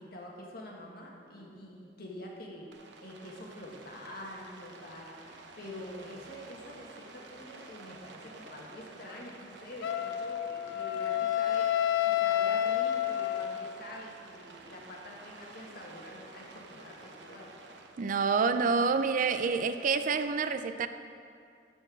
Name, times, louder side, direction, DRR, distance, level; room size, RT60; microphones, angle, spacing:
voice 1, 0.0-11.7 12.1-17.5, left 1 dB, 60° left, 1.6 m, -46 dB
Rain, 2.7-20.3, right 3 dB, 80° right, 0.9 m, -51 dB
Wind instrument woodwind instrument, 9.8-13.8, left 11 dB, 80° left, 0.4 m, -29 dB
voice 2, 18.0-20.9, right 5 dB, 50° right, 0.4 m, -28 dB
12.5 x 4.5 x 6.1 m
head